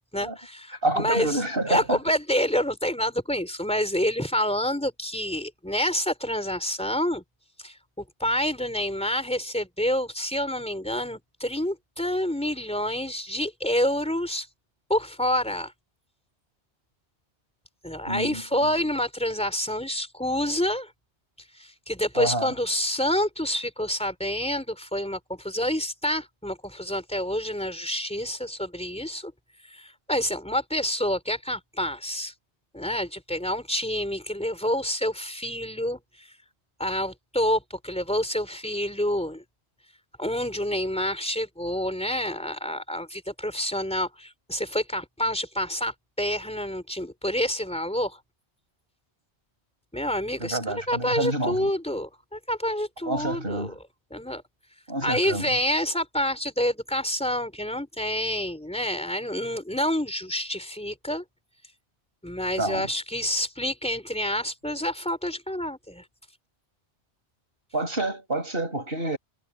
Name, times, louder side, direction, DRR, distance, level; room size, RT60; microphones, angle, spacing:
voice 1, 0.1-1.4 1.7-7.2 7.6-14.5 14.9-15.7 17.8-20.9 21.6-29.3 29.7-32.3 32.7-36.0 36.8-39.4 40.2-48.2 49.9-50.6 50.9-53.7 54.1-54.4 55.0-61.2 62.2-66.0, equal, 5° left, 4.1 m, -28 dB
voice 2, 0.8-2.0 18.1-18.4 22.1-22.5 50.4-51.7 53.1-53.7 54.9-55.4 62.6-62.9 67.7-69.2, right 2 dB, 55° right, 7.8 m, -28 dB
omnidirectional pair, 1.1 m